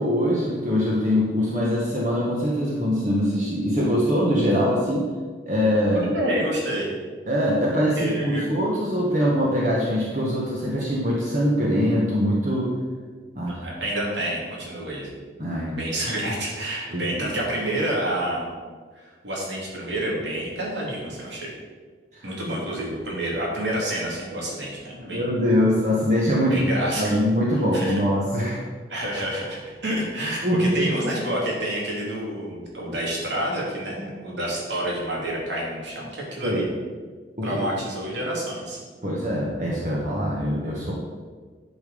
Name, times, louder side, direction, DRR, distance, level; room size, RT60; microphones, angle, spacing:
voice 1, 0.0-5.1 5.5-6.1 7.3-12.8 13.3-13.6 15.4-15.7 16.9-17.2 22.1-22.3 25.1-26.6 27.0-28.6 30.4-30.8 36.4-36.6 37.4-37.6 39.0-40.9, equal, 45° right, -4 dB, 1.4 m, -23 dB
voice 2, 5.9-6.9 8.0-8.5 13.5-15.1 15.7-18.5 18.9-21.5 22.2-25.3 26.5-27.2 27.7-28.0 28.9-36.7 37.4-38.8, right 1 dB, 90° right, -3 dB, 3.0 m, -28 dB
10.5 x 5.4 x 5.1 m, 1.5 s
head